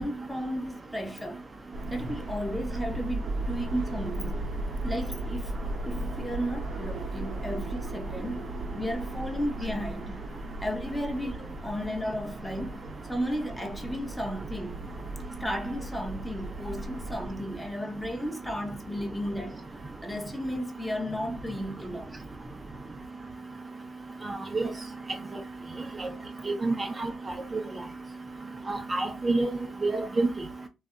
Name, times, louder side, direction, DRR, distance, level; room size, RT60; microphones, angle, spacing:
voice 1, 0.0-1.5 1.9-4.5 4.8-5.6 5.9-8.5 8.7-10.2 10.6-12.8 13.1-14.8 15.4-19.7 20.0-22.1, equal, 5° left, 0.8 m, -34 dB
sound 1, 1.7-17.3, right 2 dB, 60° right, 0.8 m, -36 dB
voice 2, 26.5-27.1 28.7-29.5 29.8-30.3, right 3 dB, 30° right, 0.6 m, -27 dB
2.6 x 2.4 x 2.2 m
supercardioid pair, 55°, 0 cm